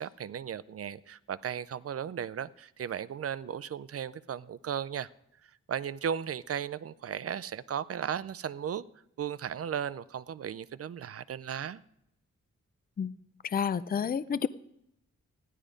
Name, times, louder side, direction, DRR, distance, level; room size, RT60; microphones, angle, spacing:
voice 1, 0.0-5.1 5.7-8.8 9.2-11.8, right 8 dB, 55° right, 16 dB, 0.5 m, -36 dB
voice 2, 13.4-14.5, left 7 dB, 30° left, 16 dB, 0.4 m, -29 dB
16.0 x 11.0 x 5.1 m, 0.78 s
wide cardioid pair, 175°, 29 cm